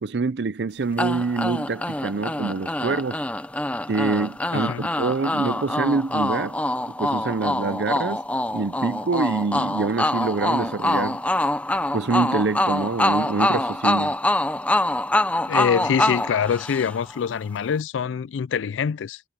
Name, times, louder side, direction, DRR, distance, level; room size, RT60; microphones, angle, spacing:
voice 1, 0.0-3.2 3.9-6.6 7.0-8.2 8.5-11.2 11.9-14.2, right 4 dB, 65° right, 0.5 m, -25 dB
sound 1, 1.0-17.2, left 1 dB, 5° left, 0.7 m, -25 dB
voice 2, 4.5-4.8 15.5-19.2, left 7 dB, 90° left, 0.4 m, -25 dB
head